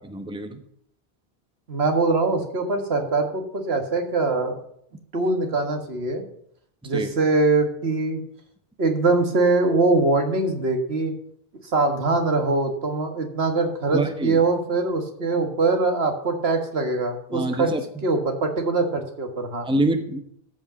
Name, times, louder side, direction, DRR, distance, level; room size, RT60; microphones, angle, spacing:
voice 1, 0.0-0.6 6.8-7.1 13.9-14.4 17.3-18.1 19.6-20.2, right 1 dB, 5° right, 7 dB, 0.9 m, -26 dB
voice 2, 1.7-4.6 5.1-6.2 6.8-8.2 8.8-11.1 11.7-17.7 18.0-19.7, right 3 dB, 85° right, 4 dB, 1.9 m, -22 dB
13.5 x 5.4 x 7.1 m, 0.68 s
omnidirectional pair, 1.0 m